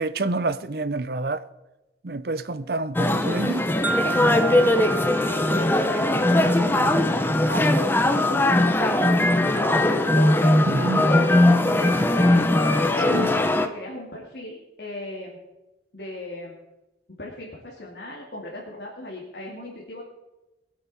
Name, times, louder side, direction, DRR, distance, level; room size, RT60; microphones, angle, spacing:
voice 1, 0.0-1.5 2.0-3.7 10.7-11.1 13.1-13.3, right 3 dB, 60° right, 0.7 m, -28 dB
sound 1, 2.9-13.7, left 1 dB, 10° left, 0.8 m, -20 dB
sound 2, 3.8-7.8, right 3 dB, 10° right, 0.4 m, -32 dB
voice 2, 4.1-7.9 8.3-8.5 8.8-9.8 10.1-12.5 12.9-15.4 15.9-16.5 17.2-20.0, left 1 dB, 65° left, 2.5 m, -36 dB
22.0 x 8.5 x 4.2 m
head